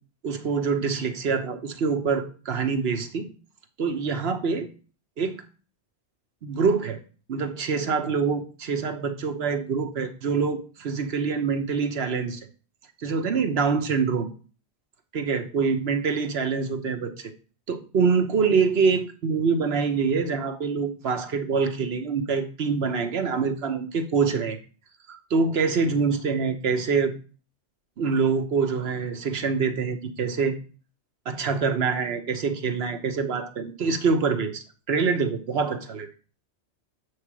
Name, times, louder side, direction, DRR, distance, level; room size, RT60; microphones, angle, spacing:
voice 1, 0.2-3.3 3.8-4.7 5.2-5.4 6.4-7.0 7.3-12.4 13.0-14.3 15.1-17.3 17.7-24.6 25.1-27.1 28.0-30.5 31.3-36.1, right 5 dB, 65° right, 8 dB, 1.1 m, -25 dB
7.7 x 3.2 x 6.0 m, 0.37 s
omnidirectional pair, 1.1 m